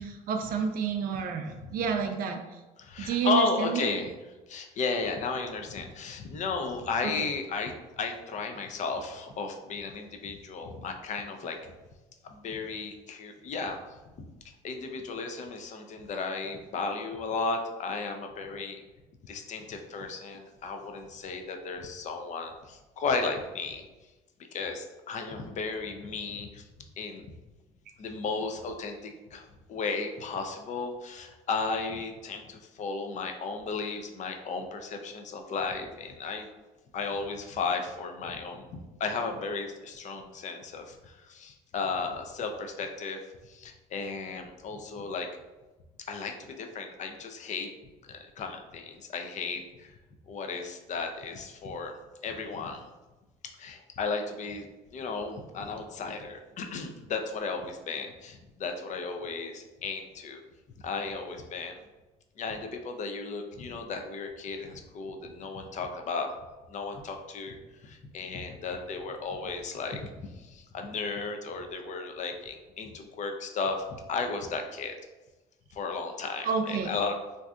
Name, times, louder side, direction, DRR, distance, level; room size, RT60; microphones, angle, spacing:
voice 1, 0.0-2.4 3.0-3.9 76.4-76.9, right 6 dB, 60° right, 4 dB, 0.4 m, -29 dB
voice 2, 2.8-4.1 4.5-11.7 12.2-14.3 14.6-18.8 19.2-23.8 24.5-26.7 27.0-27.2 28.0-36.5 36.9-45.3 46.1-47.7 48.0-50.0 50.3-51.9 52.2-52.9 53.6-60.4 60.8-61.8 62.4-66.3 66.7-74.9 75.7-77.2, left 4 dB, 45° left, 5 dB, 0.5 m, -34 dB
3.3 x 2.6 x 2.4 m, 1.1 s
supercardioid pair, 95°, 17 cm